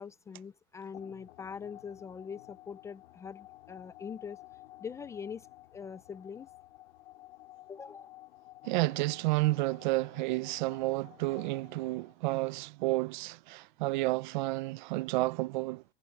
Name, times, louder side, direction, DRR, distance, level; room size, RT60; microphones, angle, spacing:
voice 1, 0.0-4.4 4.8-5.5 5.7-6.5 7.7-8.1, left 6 dB, 10° left, 0.4 m, -43 dB
sound 1, 0.9-12.3, left 16 dB, 75° left, 5.3 m, -54 dB
voice 2, 8.6-15.8, right 21 dB, 50° right, 0.5 m, -31 dB
supercardioid pair, 160°, 31 cm